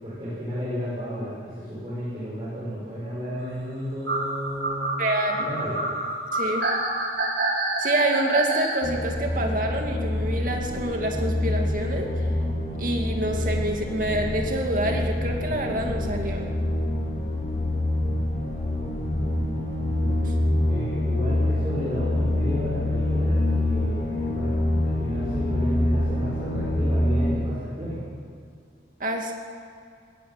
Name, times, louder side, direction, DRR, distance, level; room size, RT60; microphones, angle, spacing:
voice 1, 0.0-4.9 5.3-5.8 20.0-20.1 20.7-24.5 24.8-28.0, equal, 25° right, -9 dB, 6.9 m, -32 dB
sound 1, 4.0-8.8, right 2 dB, 70° right, 6.2 m, -27 dB
voice 2, 5.0-5.5 6.3-6.7 7.8-12.1 12.8-16.5 29.0-29.3, right 1 dB, 45° right, 2 dB, 2.5 m, -27 dB
sound 2, 8.8-27.4, left 1 dB, 40° left, 2.8 m, -26 dB
21.0 x 18.0 x 7.5 m, 2.4 s
head